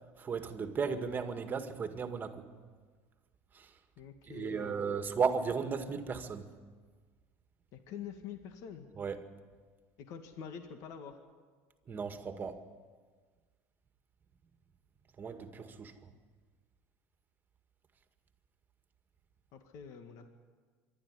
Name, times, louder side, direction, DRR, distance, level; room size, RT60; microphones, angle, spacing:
voice 1, 0.2-2.4 3.5-3.7 4.3-6.5 9.0-9.2 11.9-12.6 15.2-15.9, right 5 dB, 30° right, 7 dB, 1.9 m, -35 dB
voice 2, 4.0-4.9 7.7-8.9 10.0-11.2 19.5-20.3, left 8 dB, 60° left, 6 dB, 1.9 m, -46 dB
25.5 x 12.0 x 9.9 m, 1.5 s
supercardioid pair, 110°, 6 cm